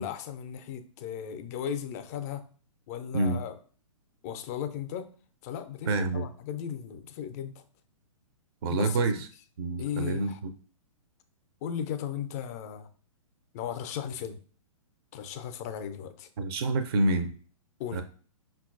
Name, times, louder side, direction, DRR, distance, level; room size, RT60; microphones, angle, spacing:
voice 1, 0.0-2.5 2.9-3.5 4.2-5.0 5.4-7.5 8.7-9.0 9.8-10.4 11.6-12.9 13.5-14.4 15.1-16.3 17.8-18.0, left 9 dB, 30° left, 0.4 m, -36 dB
voice 2, 5.9-6.3 8.6-9.3 9.6-10.5 16.4-17.3 17.9-18.0, right 2 dB, 45° right, 0.4 m, -27 dB
5.5 x 2.3 x 2.4 m
figure-of-eight pair, 120°, 18 cm